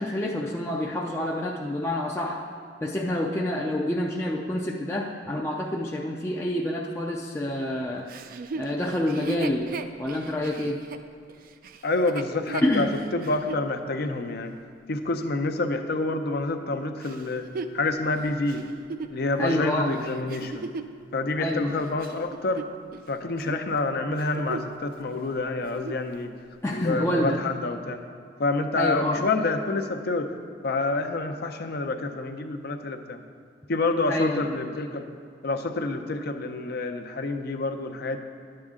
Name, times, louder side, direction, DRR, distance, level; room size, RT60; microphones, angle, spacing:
voice 1, 0.0-2.4 2.8-8.1 8.6-9.7 10.0-10.8 12.6-12.9 19.4-20.0 21.4-21.8 26.6-27.4 28.8-29.3 34.1-34.5, left 1 dB, 15° left, -2 dB, 0.4 m, -27 dB
Chuckle chortle, 8.1-13.7 14.2-14.3 17.0-21.0 21.6-23.1 23.3-23.7 24.1-24.8 25.1-25.2 25.6-26.1 26.7-26.8, right 4 dB, 50° right, 0.4 m, -37 dB
voice 2, 11.8-12.9 13.1-14.5 14.9-17.5 17.7-18.6 19.1-20.6 21.1-22.6 23.1-26.3 26.7-28.0 28.4-30.3 30.6-33.2 33.7-35.1 35.4-38.2, left 3 dB, 60° left, 7 dB, 0.6 m, -28 dB
10.5 x 7.7 x 3.7 m, 2.3 s
head